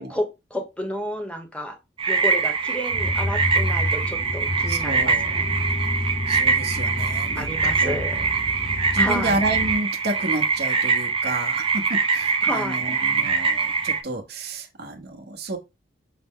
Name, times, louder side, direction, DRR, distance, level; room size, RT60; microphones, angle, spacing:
voice 1, 0.0-1.8 2.1-5.4 7.3-8.2 9.0-9.4 12.4-12.8, equal, 5° left, 0.8 m, -31 dB
sound 1, 2.0-14.0, right 5 dB, 30° right, 0.5 m, -23 dB
sound 2, 2.9-9.7, left 1 dB, 40° left, 0.8 m, -30 dB
voice 2, 4.7-5.3 6.3-8.0 8.6-15.6, right 2 dB, 60° right, 0.9 m, -31 dB
5.7 x 2.0 x 3.6 m
head